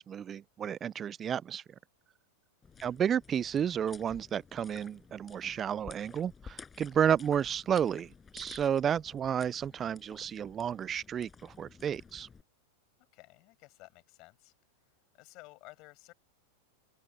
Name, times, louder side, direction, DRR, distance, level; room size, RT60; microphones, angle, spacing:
voice 1, 0.0-1.6 2.8-12.3, right 8 dB, 30° right, 0.3 m, -32 dB
sound 1, 2.6-12.4, left 5 dB, 20° left, 5.9 m, -53 dB
voice 2, 13.1-14.5 15.1-16.1, left 23 dB, 50° left, 6.1 m, -54 dB
open air
hypercardioid pair, 100°, 0 cm